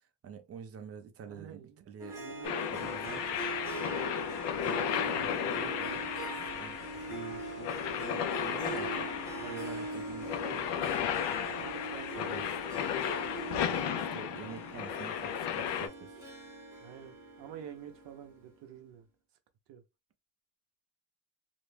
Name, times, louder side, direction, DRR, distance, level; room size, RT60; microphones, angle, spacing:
voice 1, 0.0-2.2 2.7-3.3 4.6-6.1 6.6-11.1 12.2-12.8 13.9-16.2, right 6 dB, 35° right, 0.4 m, -47 dB
voice 2, 1.3-1.8 2.1-2.5 2.8-3.2 11.5-12.5 12.9-13.0 16.8-19.1 19.7-19.8, right 9 dB, 80° right, 0.6 m, -49 dB
Harp, 2.0-18.5, right 2 dB, 5° right, 0.8 m, -42 dB
sound 1, 2.4-15.9, left 9 dB, 75° left, 0.5 m, -34 dB
2.5 x 2.1 x 3.2 m
cardioid pair, 170°, 42 cm